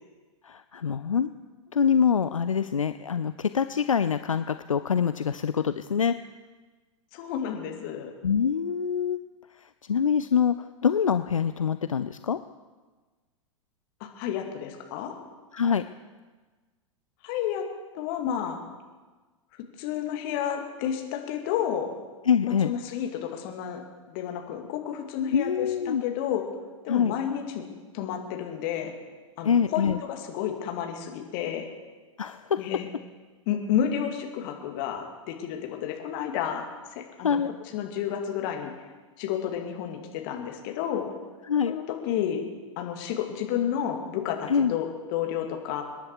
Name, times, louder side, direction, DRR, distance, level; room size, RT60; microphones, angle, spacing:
voice 1, 0.4-1.3 1.7-6.1 8.2-9.2 9.6-12.4 15.5-15.8 22.3-22.7 25.3-26.0 26.9-27.2 29.4-30.0 32.2-32.6 37.2-37.5 41.4-41.7 44.5-44.8, left 7 dB, 75° left, 12 dB, 0.5 m, -25 dB
voice 2, 7.1-8.1 14.0-15.2 17.2-17.6 17.9-18.6 19.8-21.9 22.4-23.8 24.1-26.4 26.8-27.6 27.9-28.9 29.4-31.7 32.6-32.9 33.5-37.4 37.7-38.7 39.2-41.1 41.7-42.4 42.8-45.8, left 9 dB, 40° left, 3 dB, 2.3 m, -31 dB
26.0 x 10.5 x 4.7 m, 1.3 s
figure-of-eight pair, 100°, 17 cm